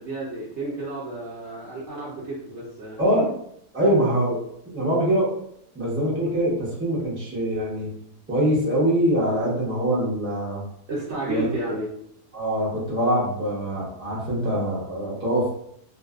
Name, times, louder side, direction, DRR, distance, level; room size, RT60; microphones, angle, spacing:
voice 1, 0.0-3.0 10.9-11.9, right 2 dB, 65° right, -7 dB, 0.7 m, -31 dB
voice 2, 3.0-3.3 3.7-4.4 4.7-5.3 5.7-7.9 8.3-10.6 11.3-11.5 12.3-15.5, right 1 dB, 20° right, -7 dB, 0.3 m, -23 dB
2.5 x 2.3 x 2.3 m, 0.71 s
omnidirectional pair, 1.8 m